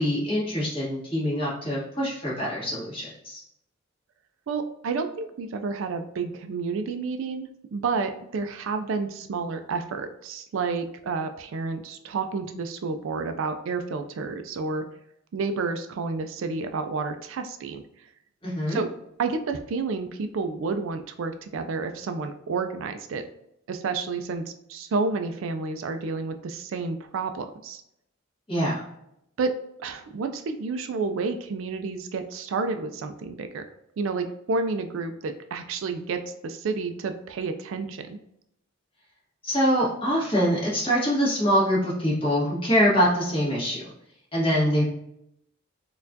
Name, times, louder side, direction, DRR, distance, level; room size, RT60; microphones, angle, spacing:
voice 1, 0.0-3.4 18.4-18.8 28.5-28.8 39.4-43.8 44.3-44.8, equal, 25° left, -7 dB, 1.3 m, -24 dB
voice 2, 4.5-14.8 15.3-17.8 18.7-18.9 19.2-23.2 23.7-27.8 29.4-29.5 29.8-33.6 34.0-38.2, right 4 dB, 70° right, 7 dB, 0.3 m, -30 dB
4.3 x 2.3 x 2.6 m, 0.78 s
head